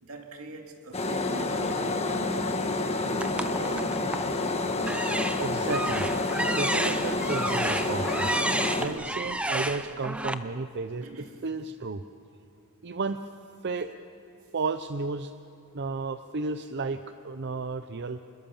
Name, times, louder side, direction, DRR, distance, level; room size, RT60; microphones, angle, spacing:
voice 1, 0.0-2.5 3.0-4.2 11.0-11.4, right 2 dB, 80° right, 2.5 m, -42 dB
sound 1, 0.9-8.9, left 2 dB, 30° left, 1.6 m, -29 dB
sound 2, 3.2-4.3 4.8-10.3, right 1 dB, 5° right, 0.7 m, -31 dB
voice 2, 5.4-6.1 6.5-8.3 8.8-12.0 12.8-13.2 13.6-13.9 14.5-15.3 15.7-17.0 17.2-18.2, right 3 dB, 50° right, 0.6 m, -32 dB
27.0 x 21.5 x 7.1 m
head